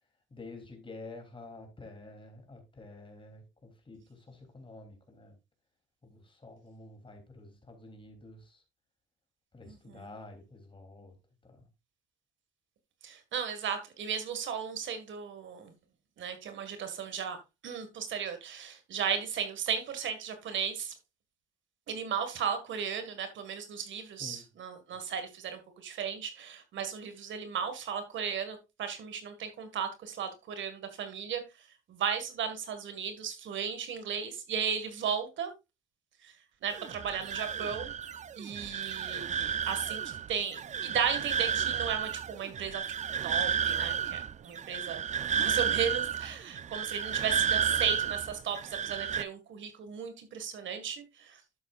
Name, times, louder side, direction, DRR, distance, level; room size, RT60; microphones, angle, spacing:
voice 1, 0.3-5.4 6.0-8.6 9.5-11.2 11.4-11.7 24.2-24.5, left 2 dB, 25° left, 4 dB, 3.1 m, -49 dB
voice 2, 9.7-10.1 13.0-15.7 16.2-17.4 17.6-20.9 21.9-31.4 31.9-35.5 36.2-36.3 36.6-37.9 38.4-42.8 43.2-45.0 45.4-51.4, right 7 dB, 70° right, 8 dB, 1.9 m, -35 dB
sound 1, 36.7-49.2, right 8 dB, 35° right, 0.4 m, -32 dB
11.5 x 7.9 x 2.5 m, 0.25 s
cardioid pair, 90°, 20 cm